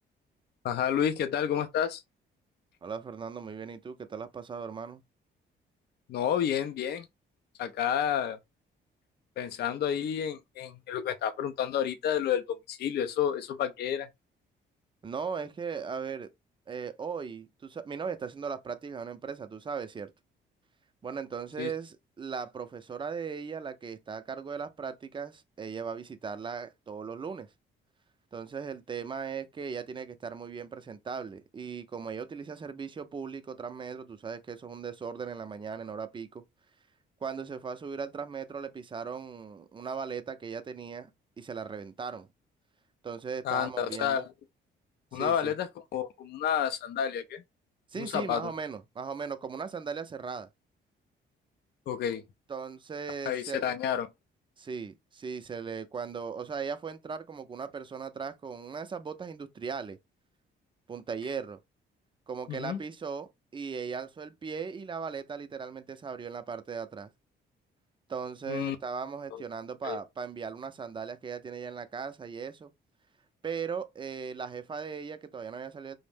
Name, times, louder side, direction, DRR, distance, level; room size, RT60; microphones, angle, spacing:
voice 1, 0.6-2.0 6.1-7.1 7.6-8.4 9.4-14.1 21.6-21.7 43.4-44.3 45.1-47.4 48.0-48.5 51.9-52.2 53.3-54.1 62.5-62.8 68.5-68.8 69.3-69.4 69.8-70.0, left 9 dB, 55° left, 0.4 m, -30 dB
voice 2, 2.8-5.0 15.0-16.3 16.7-20.1 21.0-27.5 28.3-36.4 37.2-41.1 41.4-42.3 43.0-44.3 45.1-45.5 47.9-50.5 52.5-53.6 54.6-60.0 60.9-61.6 62.3-67.1 68.1-72.7 73.4-76.0, right 6 dB, 25° right, 0.4 m, -38 dB
2.5 x 2.0 x 3.3 m
cardioid pair, 90°, 20 cm